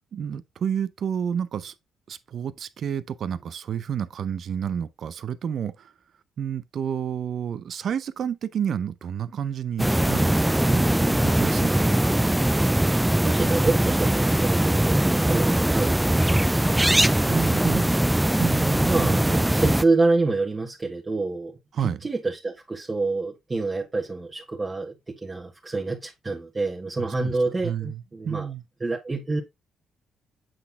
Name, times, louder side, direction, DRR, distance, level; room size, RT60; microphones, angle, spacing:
voice 1, 0.1-1.7 2.1-5.9 6.4-12.2 17.3-17.9 18.4-19.2 21.7-22.0 27.0-27.3 27.6-28.6, right 8 dB, 60° right, 0.6 m, -30 dB
sound 1, 9.8-19.8, right 1 dB, 5° right, 0.4 m, -21 dB
voice 2, 13.2-17.0 18.8-21.5 21.8-28.5 28.8-29.4, right 3 dB, 25° right, 1.6 m, -27 dB
7.9 x 4.1 x 3.6 m
cardioid pair, 90°, 0 cm